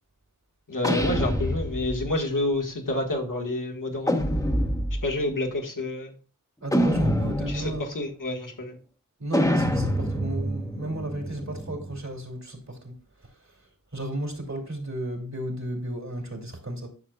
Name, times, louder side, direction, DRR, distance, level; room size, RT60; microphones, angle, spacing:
voice 1, 0.7-4.1 5.0-6.1 7.5-8.8, left 2 dB, 70° left, 1.8 m, -28 dB
sound 1, 0.8-2.1 4.1-5.1 6.7-7.8 9.3-12.0, equal, 10° left, 1.2 m, -26 dB
voice 2, 6.6-7.9 9.2-12.9 13.9-16.9, right 1 dB, 55° right, 2.8 m, -33 dB
11.5 x 6.3 x 2.4 m
wide cardioid pair, 50°, 33 cm